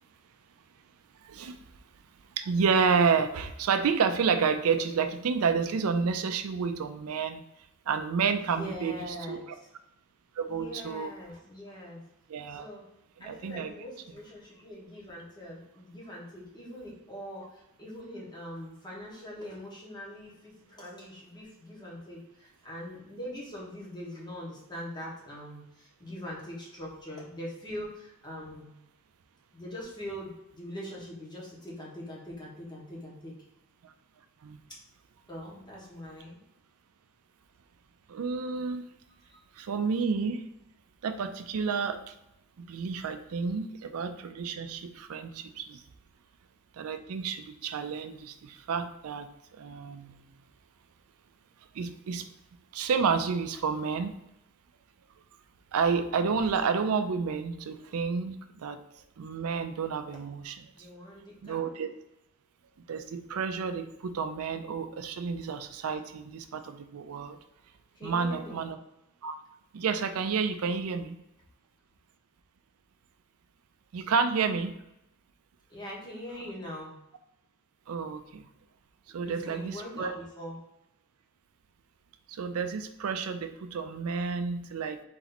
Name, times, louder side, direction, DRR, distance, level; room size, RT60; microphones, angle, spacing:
voice 1, 1.2-1.6 2.4-7.4 7.9-9.0 9.3-9.4 10.4-11.1 12.3-12.7 13.2-13.7 33.8-33.9 34.4-34.6 38.1-38.9 39.6-40.5 41.0-42.1 42.6-45.8 46.7-49.3 49.5-50.2 51.7-52.3 52.7-54.1 55.7-58.8 59.2-60.6 61.4-61.9 62.9-67.4 68.0-68.8 69.2-69.4 69.7-71.2 73.9-74.7 77.9-78.4 79.1-80.1 82.3-85.0, right 5 dB, 80° right, 9 dB, 0.4 m, -30 dB
voice 2, 8.4-9.5 10.5-12.0 12.5-12.8 13.2-28.7 29.5-33.3 35.3-36.4 39.2-39.4 60.7-61.6 67.9-68.6 75.7-77.0 79.1-80.6, equal, 20° left, -4 dB, 1.4 m, -42 dB
4.2 x 3.0 x 4.0 m, 0.84 s
head